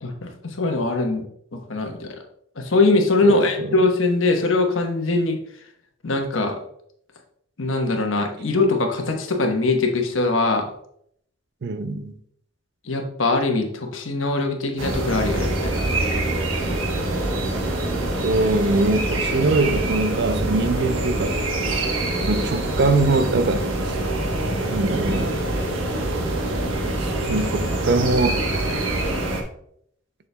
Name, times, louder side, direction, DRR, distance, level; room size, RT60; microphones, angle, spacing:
voice 1, 0.0-1.2 1.5-2.2 2.6-5.4 6.0-6.6 7.6-10.7 12.8-15.8 21.7-21.8, left 3 dB, 80° left, 1.1 m, -22 dB
voice 2, 3.2-3.7 11.6-12.1 18.2-21.4 22.2-24.0 24.7-25.4 27.0-28.5, right 3 dB, 55° right, 0.5 m, -22 dB
sound 1, 14.8-29.4, right 2 dB, 85° right, 1.1 m, -25 dB
6.8 x 6.4 x 2.2 m
head